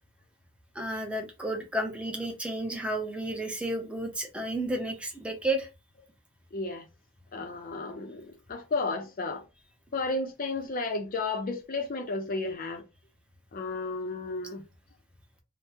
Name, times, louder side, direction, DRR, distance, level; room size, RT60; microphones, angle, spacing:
voice 1, 0.7-5.7, right 1 dB, 5° right, 0.6 m, -32 dB
voice 2, 6.5-6.9 7.3-9.4 9.9-12.8 13.5-14.6, left 3 dB, 40° left, 0.4 m, -33 dB
3.4 x 2.0 x 2.7 m
head